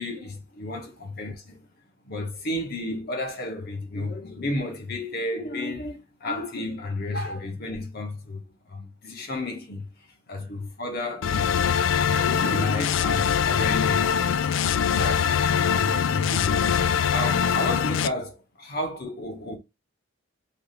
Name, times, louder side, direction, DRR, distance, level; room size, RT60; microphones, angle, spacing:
voice 1, 0.0-1.7 2.0-11.6 12.0-14.2 15.0-15.3 15.6-19.6, left 2 dB, 55° left, 1.0 m, -32 dB
sound 1, 11.2-18.1, left 7 dB, 70° left, 0.3 m, -23 dB
3.4 x 2.6 x 4.1 m
head